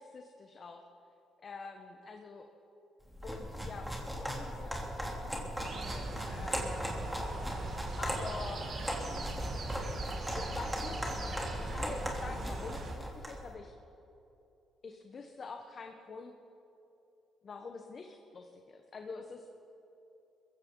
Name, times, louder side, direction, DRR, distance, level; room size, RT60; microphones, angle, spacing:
voice 1, 0.1-0.8 1.4-2.5 3.2-7.0 8.0-8.7 9.7-9.9 10.3-11.1 11.6-13.7 14.8-16.3 17.4-19.5, left 4 dB, 45° left, 4 dB, 1.2 m, -46 dB
sound 1, 3.1-13.4, equal, 5° right, 3.2 m, -38 dB
sound 2, 5.6-12.9, right 2 dB, 55° right, 2.7 m, -40 dB
21.5 x 15.5 x 3.9 m, 2.8 s
cardioid pair, 90°, 0 cm